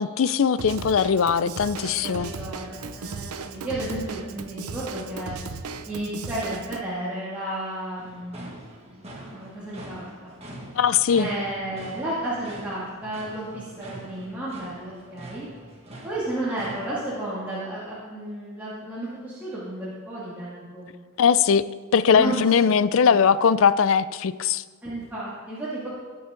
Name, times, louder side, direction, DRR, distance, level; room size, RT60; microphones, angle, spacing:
voice 1, 0.0-2.3 10.8-11.3 21.2-21.6 21.9-24.6, left 6 dB, 65° left, 16 dB, 0.4 m, -20 dB
Drum kit / Drum, 0.6-6.8, right 4 dB, 90° right, 0.7 m, -36 dB
voice 2, 1.9-5.4 5.9-8.4 8.9-10.3 11.2-15.5 16.0-20.9 22.1-22.7 24.8-25.9, right 1 dB, 10° right, -11 dB, 2.3 m, -32 dB
sound 1, 8.0-17.0, right 1 dB, 30° right, 1.8 m, -43 dB
20.0 x 7.0 x 3.8 m, 1.5 s
head